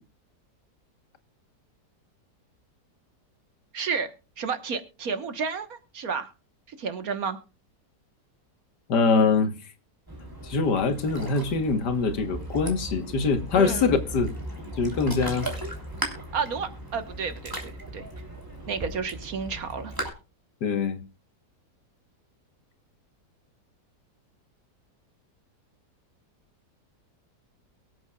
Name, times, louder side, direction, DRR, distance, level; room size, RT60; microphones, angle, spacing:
voice 1, 3.7-4.1 4.4-6.3 6.7-7.4 13.5-14.0 16.3-18.1 18.7-19.9, right 5 dB, 60° right, 1.6 m, -31 dB
voice 2, 8.9-9.5 10.4-14.3 14.8-15.5 20.6-21.0, left 4 dB, 75° left, 1.9 m, -23 dB
Ocean, 10.1-20.1, right 1 dB, 10° right, 3.2 m, -37 dB
23.0 x 7.9 x 2.3 m
omnidirectional pair, 1.8 m